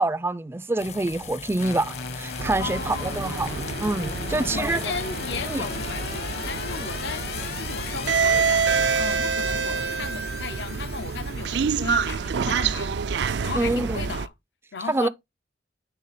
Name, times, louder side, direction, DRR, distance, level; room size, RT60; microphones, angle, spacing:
voice 1, 0.0-4.8 5.5-5.6 13.6-14.1 14.9-15.1, right 2 dB, 15° right, 0.3 m, -26 dB
sound 1, 0.8-9.0, left 5 dB, 40° left, 0.6 m, -39 dB
sound 2, 1.6-11.8, left 4 dB, 60° left, 1.1 m, -37 dB
sound 3, 2.4-14.3, right 6 dB, 80° right, 0.4 m, -27 dB
voice 2, 2.6-3.3 4.3-8.7 9.0-14.3 14.7-15.1, left 5 dB, 80° left, 0.7 m, -36 dB
9.4 x 3.6 x 4.1 m
head